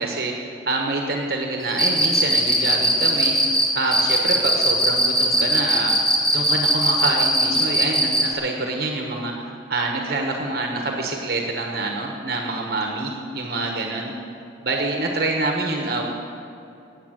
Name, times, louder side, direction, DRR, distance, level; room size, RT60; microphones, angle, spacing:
voice 1, 0.0-5.9 6.3-14.1 14.6-16.1, right 2 dB, 55° right, 1 dB, 1.4 m, -26 dB
Cricket, 1.7-8.3, equal, 5° left, 1.6 m, -19 dB
18.5 x 8.6 x 6.6 m, 2.7 s
head